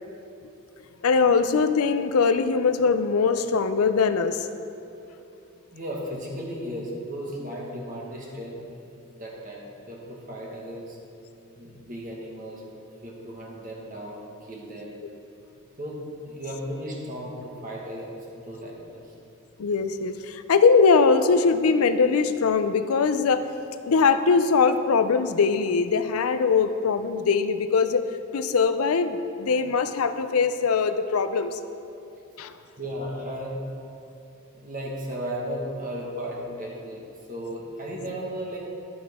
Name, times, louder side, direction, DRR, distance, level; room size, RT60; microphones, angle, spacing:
voice 1, 1.0-4.5 19.6-23.4 23.9-28.1 28.3-31.6 32.4-32.5, left 5 dB, 90° left, 10 dB, 0.5 m, -21 dB
voice 2, 5.7-8.7 9.1-11.0 11.6-12.6 13.0-14.9 15.8-19.1 32.8-33.6 34.5-38.6, equal, 40° right, -2 dB, 1.6 m, -35 dB
11.5 x 8.7 x 3.6 m, 2.7 s
head